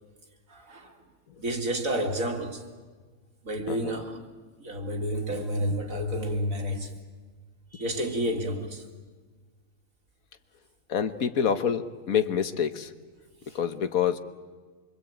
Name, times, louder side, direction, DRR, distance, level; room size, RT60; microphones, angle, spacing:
voice 1, 0.5-1.0 1.4-2.7 3.4-4.3 4.6-6.9 7.7-8.9, equal, 70° right, 3.1 m, -30 dB
voice 2, 10.9-12.9 13.5-14.2, left 8 dB, 75° left, 1.6 m, -27 dB
26.0 x 24.0 x 8.9 m
omnidirectional pair, 1.5 m